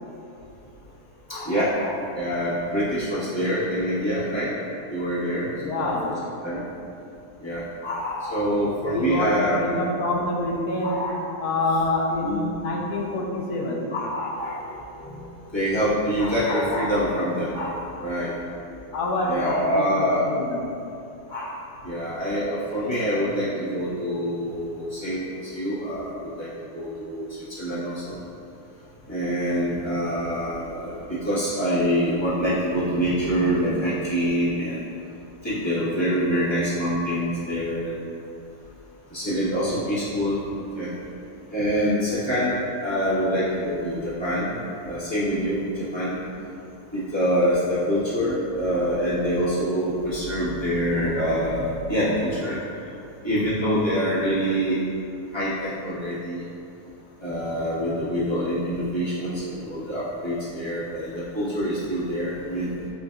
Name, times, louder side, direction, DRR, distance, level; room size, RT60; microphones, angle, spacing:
voice 1, 1.3-4.5 4.9-5.5 5.8-6.1 6.4-6.6 7.4-9.6 10.8-11.3 12.2-12.5 13.9-18.3 19.3-20.3 21.3-21.5 21.8-26.5 26.7-28.2 29.1-34.9 35.4-37.9 39.1-40.4 40.7-40.9 41.5-44.5 44.8-46.2 46.9-52.6 53.2-54.8 55.3-56.4 57.2-62.7, equal, 20° left, -12 dB, 1.2 m, -25 dB
voice 2, 5.6-6.1 8.8-11.0 11.4-13.8 18.9-20.1 20.4-20.7, left 1 dB, 70° left, -1 dB, 1.1 m, -26 dB
7.5 x 2.6 x 2.3 m, 2.7 s
omnidirectional pair, 1.8 m